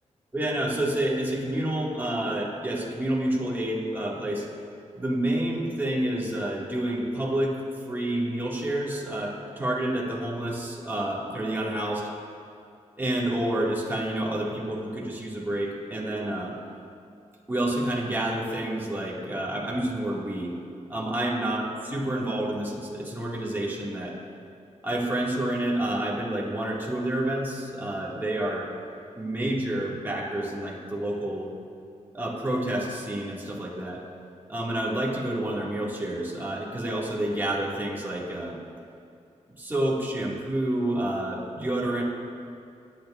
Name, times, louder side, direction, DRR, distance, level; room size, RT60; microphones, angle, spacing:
voice 1, 0.3-4.5 4.9-7.6 7.9-12.1 13.0-16.6 17.5-20.5 20.9-24.1 24.8-28.7 29.2-31.5 32.1-34.0 34.5-38.6 39.6-42.0, right 1 dB, 15° right, -4 dB, 2.1 m, -29 dB
20.0 x 9.1 x 2.5 m, 2.5 s
wide cardioid pair, 95°, 13 cm